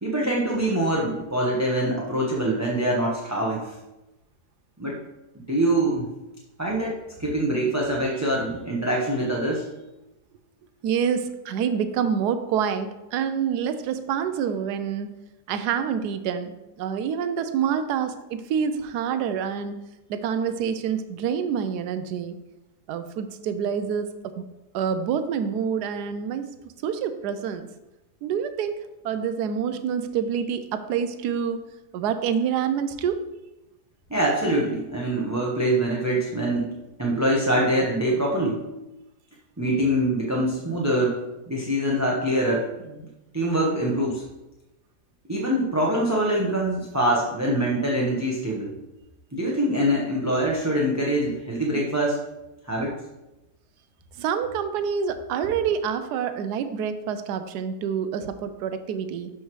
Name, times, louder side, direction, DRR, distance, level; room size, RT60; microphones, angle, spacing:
voice 1, 0.0-3.7 4.8-5.0 5.3-6.1 6.6-9.7 34.1-36.7 37.0-38.7 39.6-41.2 41.5-43.1 43.3-44.3 45.3-48.7 49.3-52.2 52.7-52.9, right 1 dB, 15° right, -4 dB, 0.8 m, -24 dB
voice 2, 10.8-15.1 15.5-19.8 20.1-22.4 22.9-24.5 24.7-27.7 28.2-31.6 31.9-33.3 54.2-59.3, right 7 dB, 85° right, 10 dB, 1.2 m, -27 dB
12.0 x 4.9 x 3.1 m, 0.98 s
omnidirectional pair, 1.7 m